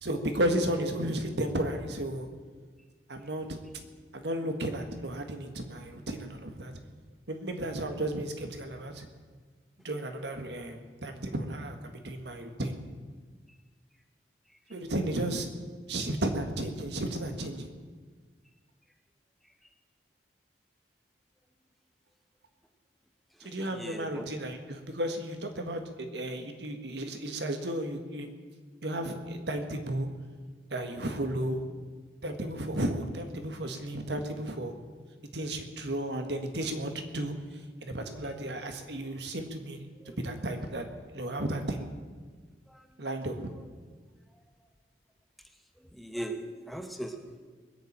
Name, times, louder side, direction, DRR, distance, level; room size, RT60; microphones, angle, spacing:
voice 1, 0.0-2.3 3.1-3.4 4.1-6.7 7.3-9.1 9.8-12.8 14.7-15.5 15.9-17.7 23.4-28.3 28.8-30.1 30.7-31.6 32.2-34.7 35.3-37.3 37.8-39.8 40.2-40.9 41.1-41.9 43.0-43.5, right 1 dB, 70° right, 6 dB, 1.6 m, -33 dB
voice 2, 23.4-24.3 40.0-40.2 42.7-42.8 45.9-47.5, right 1 dB, ahead, 4 dB, 0.9 m, -39 dB
20.5 x 7.2 x 8.7 m, 1.5 s
head